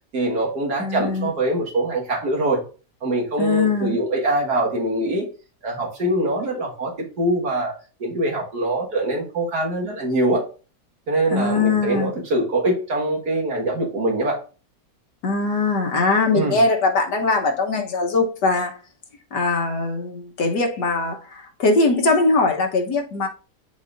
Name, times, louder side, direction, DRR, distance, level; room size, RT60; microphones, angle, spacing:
voice 1, 0.1-2.6 3.0-5.3 5.6-10.4 11.1-14.4 16.3-16.6, right 1 dB, 65° right, 2.2 m, -23 dB
voice 2, 0.8-1.3 3.4-4.0 11.3-12.1 15.2-18.8 19.3-23.3, left 3 dB, 75° left, 1.8 m, -21 dB
11.0 x 4.2 x 2.6 m
omnidirectional pair, 1.8 m